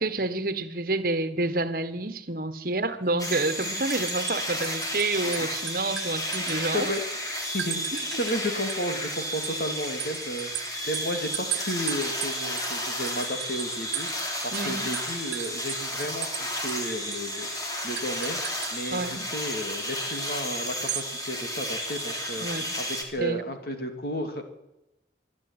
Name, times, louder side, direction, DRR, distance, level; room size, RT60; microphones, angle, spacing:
voice 1, 0.0-6.9 14.5-14.9 18.9-19.3 22.4-22.7 23.2-23.4, right 2 dB, 50° right, 11 dB, 1.6 m, -29 dB
sound 1, 3.0-3.3 3.6-5.0 5.3-7.0 7.6-8.4 8.7-14.2 14.5-14.7 14.9-16.4 16.7-16.8 17.1-17.3 18.0-18.7 20.7-21.1, right 13 dB, 85° right, 1.1 m, -36 dB
sound 2, 3.2-23.0, equal, 20° left, 3.3 m, -32 dB
voice 2, 6.7-10.5 10.9-18.4 18.7-22.5 22.8-24.4, equal, 55° left, 5 dB, 3.1 m, -33 dB
26.0 x 10.5 x 10.0 m, 0.91 s
head